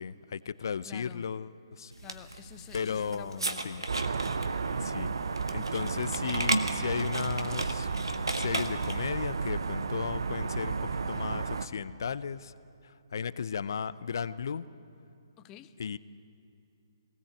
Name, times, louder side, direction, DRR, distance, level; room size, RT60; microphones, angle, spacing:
voice 1, 0.0-1.9 2.7-3.8 4.8-5.1 5.5-7.9 8.3-12.5 13.1-14.6 15.8-16.0, left 6 dB, 55° left, 16 dB, 0.7 m, -35 dB
voice 2, 0.8-1.3 2.0-3.8 15.4-16.0, left 10 dB, 20° left, 12 dB, 0.8 m, -49 dB
sound 1, 1.9-9.1, right 1 dB, 85° right, 1.6 m, -35 dB
sound 2, 3.9-11.7, right 4 dB, 65° right, 0.9 m, -33 dB
21.5 x 18.5 x 8.1 m, 2.7 s
figure-of-eight pair, 135°, 2 cm